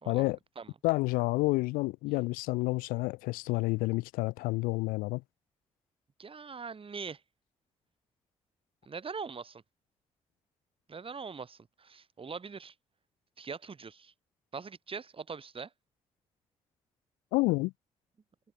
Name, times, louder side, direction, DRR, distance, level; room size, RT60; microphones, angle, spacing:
voice 1, 0.1-0.4 0.8-5.2 17.3-17.7, left 22 dB, 70° left, 0.5 m, -29 dB
voice 2, 6.2-7.2 8.9-9.6 10.9-12.7 13.4-14.1 14.5-15.7, right 5 dB, 35° right, 2.3 m, -42 dB
hypercardioid pair, 40°, 15 cm